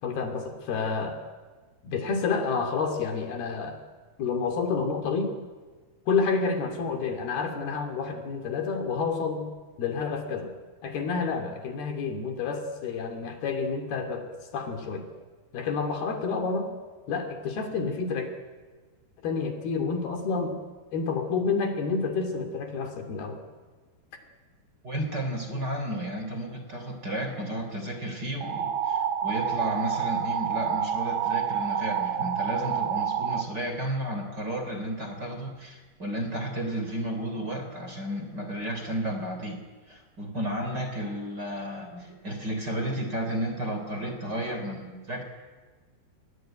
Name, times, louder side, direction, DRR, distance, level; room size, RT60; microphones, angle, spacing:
voice 1, 0.0-1.2 1.8-3.8 4.2-5.3 6.1-9.5 9.8-10.5 10.8-14.3 14.5-15.1 15.5-16.7 17.1-18.3 19.2-20.6 20.9-23.4, left 5 dB, 65° left, 5 dB, 4.6 m, -29 dB
voice 2, 24.8-39.6 39.9-45.2, right 1 dB, 25° right, 5 dB, 3.6 m, -33 dB
sound 1, 28.4-33.4, right 8 dB, 80° right, 1.3 m, -28 dB
29.0 x 21.5 x 9.2 m, 1.3 s
omnidirectional pair, 4.9 m